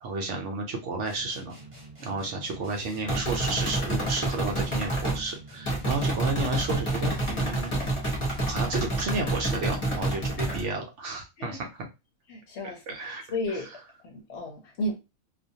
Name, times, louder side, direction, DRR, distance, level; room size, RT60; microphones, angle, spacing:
voice 1, 0.0-1.5 2.0-7.9 8.5-11.7 12.6-13.2, right 3 dB, 65° right, 0.8 m, -32 dB
sound 1, 1.0-8.8, right 2 dB, 30° right, 0.6 m, -47 dB
sound 2, 3.1-5.2 5.6-10.6, right 1 dB, 30° left, 0.6 m, -28 dB
voice 2, 12.3-13.7 14.0-15.0, left 1 dB, 65° left, 0.8 m, -34 dB
2.4 x 2.2 x 2.6 m
omnidirectional pair, 1.5 m